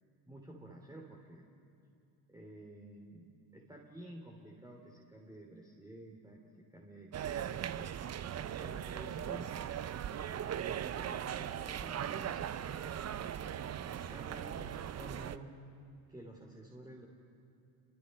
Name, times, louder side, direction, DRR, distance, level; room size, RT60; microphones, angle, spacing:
voice 1, 0.3-1.4 2.3-6.4 6.7-7.9 8.5-9.5 10.8-13.1 13.8-15.5 16.1-17.1, right 1 dB, 5° right, -1 dB, 3.1 m, -51 dB
sound 1, 7.1-15.4, right 9 dB, 30° right, 0.8 m, -39 dB
29.5 x 24.0 x 5.5 m, 2.6 s
hypercardioid pair, 80°, 49 cm